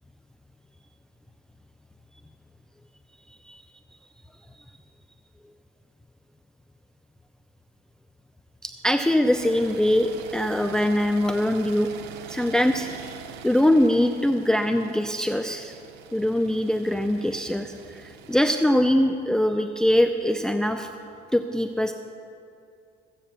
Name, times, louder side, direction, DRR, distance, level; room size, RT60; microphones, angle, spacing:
voice 1, 8.6-11.9 12.3-12.9 13.4-15.7 16.1-20.9 21.3-21.9, left 1 dB, 5° left, 7 dB, 0.5 m, -22 dB
sound 1, 9.3-18.5, right 8 dB, 85° right, 0.7 m, -44 dB
15.0 x 8.2 x 6.9 m, 2.5 s
cardioid pair, 110°, 17 cm